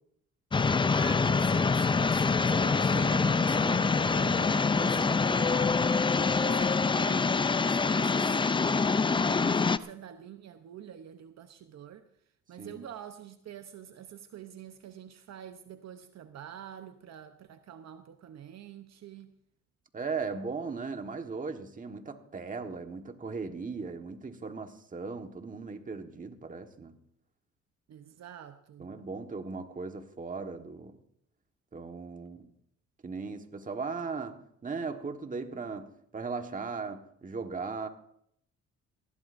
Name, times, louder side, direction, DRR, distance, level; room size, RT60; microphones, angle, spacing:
sound 1, 0.5-9.8, left 4 dB, 15° left, 0.4 m, -25 dB
voice 1, 0.9-5.9 6.4-12.1 12.5-19.3 27.9-28.9, right 9 dB, 60° right, 0.8 m, -46 dB
voice 2, 19.9-27.0 28.8-31.0 31.7-32.5 33.0-37.9, right 4 dB, 25° right, 1.4 m, -38 dB
20.0 x 15.5 x 2.6 m
cardioid pair, 90°, 30 cm